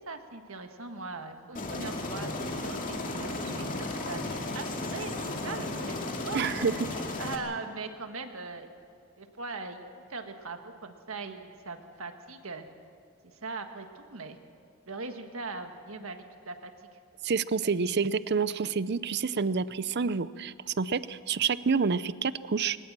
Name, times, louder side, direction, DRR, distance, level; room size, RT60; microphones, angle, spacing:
voice 1, 0.0-8.7 9.2-9.8 10.1-12.6 13.2-14.4 14.9-17.0, right 3 dB, 70° right, 6 dB, 1.6 m, -40 dB
Aircraft, 1.5-7.3, left 2 dB, 40° left, 2.2 m, -34 dB
voice 2, 6.3-6.7 17.2-22.8, right 5 dB, 50° right, 16 dB, 0.6 m, -28 dB
21.5 x 20.0 x 7.5 m, 2.4 s
head